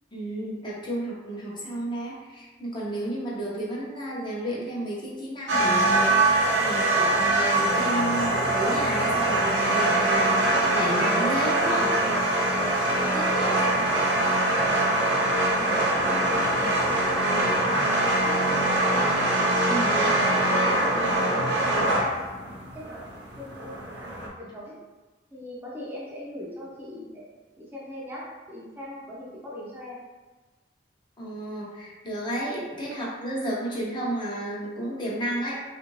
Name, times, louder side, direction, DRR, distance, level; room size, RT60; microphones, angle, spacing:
voice 1, 0.1-11.9 12.9-13.6 19.7-20.0 31.2-35.6, right 1 dB, 25° left, -5 dB, 0.8 m, -32 dB
sound 1, 5.5-24.3, right 1 dB, 85° right, 0.7 m, -23 dB
voice 2, 15.5-17.8 18.1-19.3 19.9-23.0 23.4-24.7 25.3-27.3 27.6-30.0, equal, 10° right, -7 dB, 0.6 m, -40 dB
3.5 x 2.5 x 3.0 m, 1.2 s
head